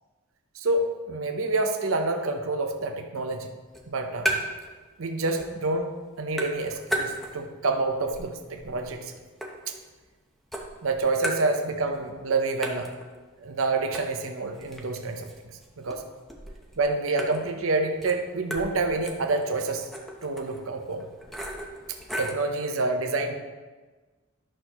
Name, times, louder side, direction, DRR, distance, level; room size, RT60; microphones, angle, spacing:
voice 1, 0.5-3.5 3.9-4.4 5.0-5.9 6.2-9.2 9.7-9.8 10.8-12.9 13.4-16.0 16.8-19.9 20.2-21.1 22.2-23.4, right 3 dB, 70° right, 4 dB, 0.8 m, -28 dB
sound 1, 3.7-4.7 5.0-5.7 6.0-7.6 8.0-10.2 10.5-12.0 12.2-12.3 12.6-22.5, right 1 dB, ahead, 0.8 m, -36 dB
11.5 x 6.3 x 3.0 m, 1.3 s
head